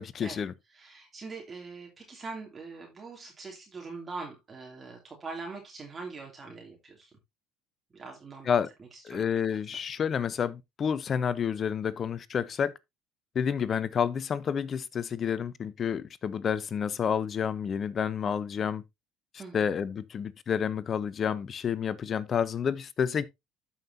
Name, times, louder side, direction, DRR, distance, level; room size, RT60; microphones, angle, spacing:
voice 1, 0.0-0.5 8.5-8.7 9.0-12.7 13.3-18.8 19.5-23.2, left 7 dB, 40° left, 0.7 m, -29 dB
voice 2, 0.7-7.1 7.9-9.3 19.4-19.8, right 4 dB, 30° right, 2.8 m, -43 dB
13.0 x 5.6 x 2.7 m
hypercardioid pair, 75°, 0 cm